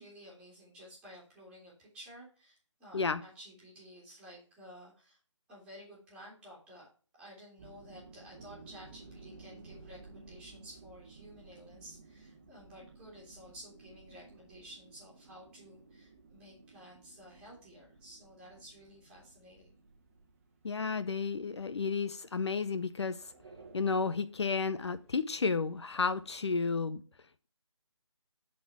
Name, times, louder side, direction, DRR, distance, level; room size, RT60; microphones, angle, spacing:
voice 1, 0.0-5.2 5.5-6.9 7.1-19.7, equal, 5° right, 2.4 m, -53 dB
sound 1, 7.6-26.7, right 3 dB, 25° right, 1.1 m, -57 dB
voice 2, 20.6-23.2 23.7-27.0, left 4 dB, 60° left, 0.6 m, -32 dB
9.2 x 4.3 x 4.6 m
hypercardioid pair, 170°, 16 cm